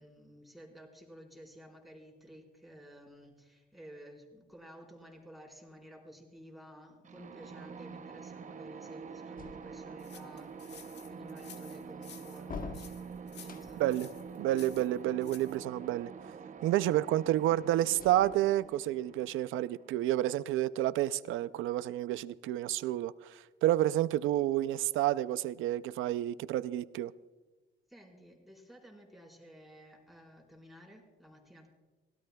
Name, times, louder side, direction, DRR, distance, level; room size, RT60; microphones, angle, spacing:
voice 1, 0.0-13.8 27.9-31.7, equal, ahead, 4.4 m, -53 dB
sound 1, 7.0-20.7, right 5 dB, 40° right, 0.7 m, -47 dB
sound 2, 9.4-10.1 12.4-14.0 17.9-18.9, left 5 dB, 45° left, 1.1 m, -46 dB
sound 3, 10.0-15.6, left 7 dB, 60° left, 1.4 m, -54 dB
voice 2, 13.8-14.1 14.4-16.1 16.6-27.1, right 14 dB, 85° right, 0.5 m, -30 dB
25.0 x 17.0 x 2.3 m
cardioid pair, 90°, 20 cm